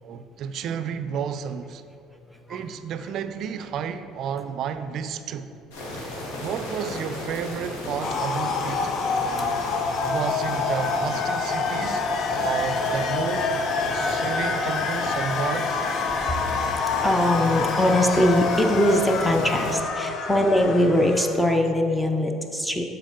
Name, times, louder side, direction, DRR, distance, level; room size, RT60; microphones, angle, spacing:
voice 1, 0.0-1.8 2.5-5.5 6.4-9.6 10.0-12.0 12.4-13.5 13.9-15.9, right 7 dB, 60° right, 11 dB, 0.4 m, -31 dB
sound 1, 5.7-19.8, left 1 dB, 85° left, 1.4 m, -35 dB
sound 2, 8.0-21.6, left 4 dB, 50° left, 0.5 m, -27 dB
voice 2, 13.9-14.2 16.2-22.8, left 1 dB, 5° left, 3 dB, 0.6 m, -22 dB
7.3 x 4.3 x 3.8 m, 2.6 s
supercardioid pair, 95°, 0 cm